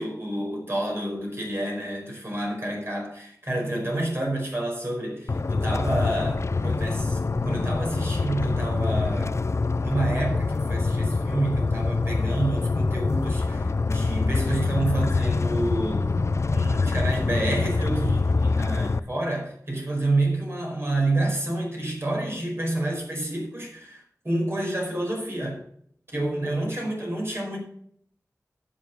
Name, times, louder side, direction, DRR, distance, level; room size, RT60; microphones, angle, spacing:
voice 1, 0.0-9.4 9.8-16.2 16.5-25.6 26.1-27.6, right 1 dB, 45° right, 5.0 m, -29 dB
sound 1, 5.3-19.0, left 3 dB, 50° left, 0.4 m, -25 dB
9.4 x 6.9 x 6.8 m
cardioid pair, 40°, 6 cm